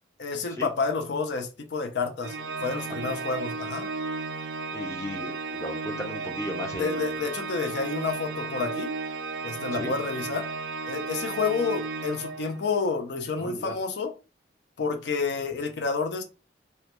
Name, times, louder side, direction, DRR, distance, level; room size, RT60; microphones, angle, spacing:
voice 1, 0.2-2.4 2.6-3.9 6.8-8.9 9.4-10.5 10.9-14.1 14.8-16.2, left 4 dB, 70° left, 0.5 m, -29 dB
Organ, 2.2-12.8, right 4 dB, 70° right, 0.3 m, -34 dB
voice 2, 4.7-7.2 9.8-9.9 13.4-13.8, left 1 dB, 15° left, 0.4 m, -36 dB
2.3 x 2.1 x 2.8 m
head